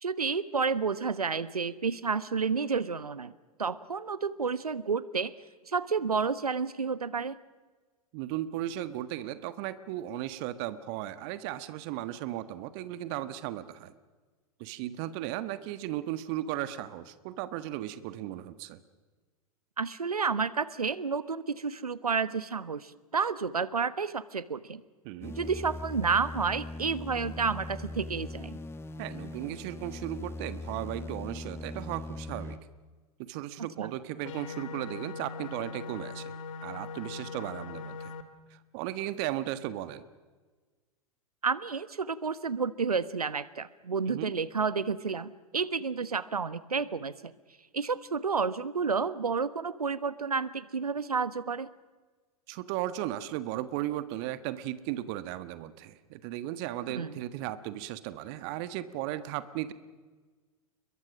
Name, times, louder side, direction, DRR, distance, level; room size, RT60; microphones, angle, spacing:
voice 1, 0.0-3.3 3.6-5.3 5.7-7.4 19.8-24.8 25.4-28.6 33.8-33.9 41.4-47.3 47.7-51.7 56.9-57.2, right 5 dB, 80° right, 16 dB, 1.2 m, -30 dB
voice 2, 8.1-13.9 14.6-18.8 25.0-25.3 29.0-32.6 33.2-36.3 36.6-38.1 38.5-40.1 44.1-44.3 52.5-59.7, right 13 dB, 45° right, 12 dB, 1.5 m, -36 dB
sound 1, 25.2-32.6, left 2 dB, 15° left, 1.6 m, -40 dB
sound 2, 34.2-38.2, left 4 dB, 60° left, 2.7 m, -40 dB
30.0 x 22.5 x 6.4 m, 1.4 s
figure-of-eight pair, 95°, 19 cm